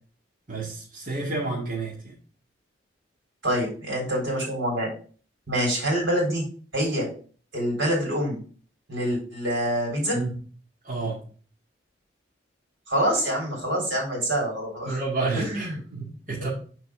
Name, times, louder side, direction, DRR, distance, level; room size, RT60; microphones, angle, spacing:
voice 1, 0.5-2.1 10.1-10.3 10.8-11.2 14.8-16.5, right 3 dB, 45° right, -5 dB, 2.1 m, -30 dB
voice 2, 3.4-4.9 5.5-6.4 6.7-7.1 7.5-8.4 8.9-10.2 12.9-15.0 15.3-15.7 16.4-16.5, equal, 90° right, -1 dB, 3.9 m, -26 dB
6.3 x 4.6 x 4.9 m, 0.41 s
head